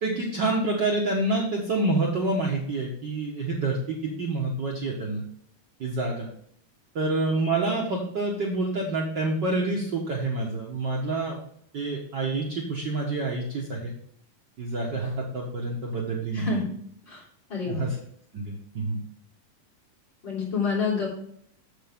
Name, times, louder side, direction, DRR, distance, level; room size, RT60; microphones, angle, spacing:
voice 1, 0.0-5.2 5.8-6.3 6.9-11.4 11.7-14.0 14.6-16.6 17.7-17.9 18.3-19.0, right 2 dB, 70° right, -2 dB, 1.0 m, -27 dB
voice 2, 16.3-16.7 17.1-17.2 17.5-17.9 20.2-21.1, left 5 dB, 30° left, -5 dB, 3.8 m, -27 dB
8.8 x 7.7 x 3.6 m, 0.65 s
omnidirectional pair, 4.0 m